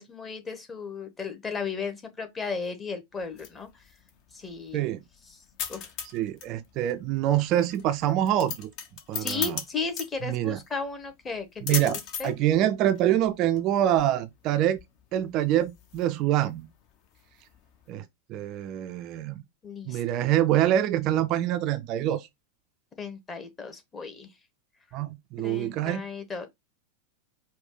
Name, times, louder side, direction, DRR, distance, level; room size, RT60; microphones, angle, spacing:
voice 1, 0.0-3.7 4.3-4.9 5.3-5.4 5.7-5.9 9.2-12.3 19.6-20.2 23.0-24.3 25.4-26.5, left 4 dB, 20° left, 1.1 m, -35 dB
sound 1, 3.1-17.9, left 7 dB, 40° left, 0.8 m, -40 dB
voice 2, 6.1-8.7 9.1-9.6 10.2-10.6 11.6-12.0 12.2-14.8 15.1-16.7 17.9-18.0 18.3-19.4 19.9-22.3 24.9-26.0, right 12 dB, 40° right, 0.4 m, -25 dB
5.0 x 2.3 x 3.7 m
figure-of-eight pair, 90°, 0 cm